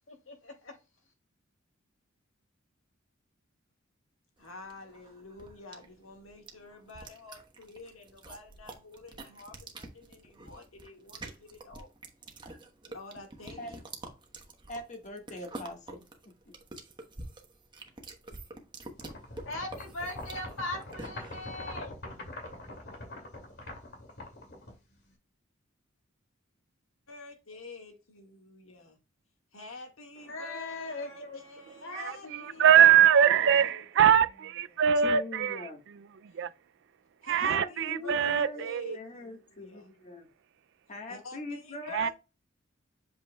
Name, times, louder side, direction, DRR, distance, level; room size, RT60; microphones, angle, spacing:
voice 1, 0.1-0.7 19.5-21.9 30.3-31.4 31.8-32.6, left 2 dB, 70° left, 2.5 m, -39 dB
voice 2, 4.4-11.9 12.9-13.8 27.1-29.0 29.5-33.8 34.7-34.8 37.2-39.9 41.1-42.1, left 3 dB, 90° left, 1.8 m, -48 dB
sound 1, 4.4-21.5, right 2 dB, 25° right, 1.1 m, -47 dB
voice 3, 14.7-16.0 35.0-35.8 37.4-38.7 38.9-40.2 40.9-42.1, left 2 dB, 35° left, 1.6 m, -41 dB
sound 2, 19.0-25.1, left 1 dB, 55° left, 2.5 m, -43 dB
voice 4, 31.9-36.5 37.2-39.0 41.9-42.1, right 9 dB, 60° right, 0.4 m, -23 dB
8.0 x 5.1 x 2.3 m
head